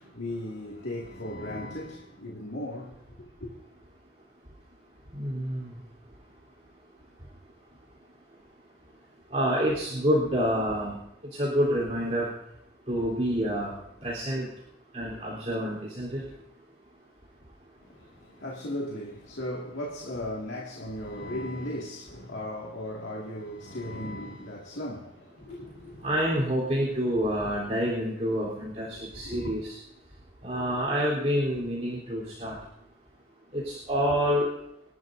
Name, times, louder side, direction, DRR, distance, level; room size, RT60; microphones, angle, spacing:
voice 1, 0.0-3.0 3.4-3.5 17.8-26.1 29.1-29.5, left 1 dB, 85° left, 2.1 m, -37 dB
voice 2, 5.1-5.7 9.3-11.0 11.3-12.3 12.9-13.7 14.0-14.5 14.9-16.2 26.0-29.8 30.4-32.6 33.5-34.5, equal, 35° right, 3.6 m, -27 dB
29.0 x 12.0 x 2.7 m
head